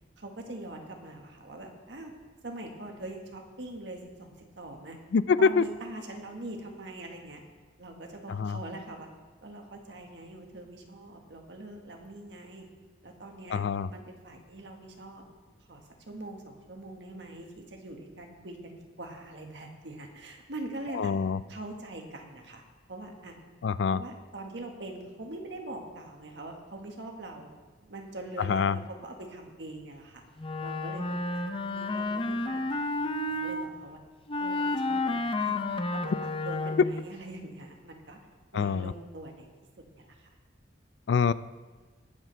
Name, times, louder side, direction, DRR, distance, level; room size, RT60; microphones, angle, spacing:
voice 1, 0.2-2.1 2.4-5.0 5.4-7.4 7.8-9.1 9.4-12.7 13.0-13.6 13.9-15.2 15.7-21.1 21.5-22.6 22.9-23.3 23.9-27.5 27.8-30.2 30.6-34.0 34.4-38.2 38.5-39.5 40.0-40.3, right 2 dB, 70° right, 2 dB, 1.6 m, -43 dB
voice 2, 5.1-5.6 8.3-8.6 13.5-13.9 20.9-21.4 23.6-24.0 28.4-28.8 38.5-38.9 41.1-41.3, left 5 dB, 70° left, 16 dB, 0.4 m, -25 dB
Wind instrument woodwind instrument, 30.4-33.6 34.3-37.0, left 2 dB, 30° left, 0.6 m, -31 dB
20.5 x 7.4 x 3.4 m, 1.3 s
head